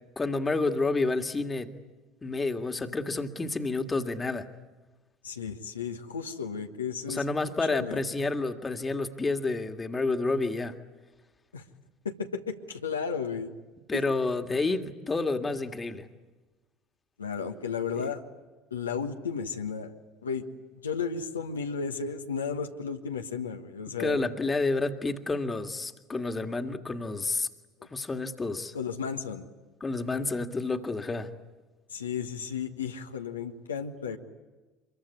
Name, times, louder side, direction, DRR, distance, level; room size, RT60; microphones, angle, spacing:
voice 1, 0.2-1.7 2.2-4.5 7.1-10.8 13.9-16.1 17.9-18.1 24.0-27.5 27.9-28.7 29.8-31.3, left 3 dB, 20° left, 7 dB, 2.0 m, -29 dB
voice 2, 5.2-7.2 7.7-8.0 11.5-11.6 12.0-13.5 13.9-14.0 17.2-18.2 18.7-19.9 20.2-20.4 20.7-24.2 27.8-27.9 28.7-29.5 31.9-34.2, left 6 dB, 80° left, 4 dB, 1.4 m, -34 dB
25.5 x 23.0 x 9.7 m, 1.2 s
figure-of-eight pair, 65°, 0 cm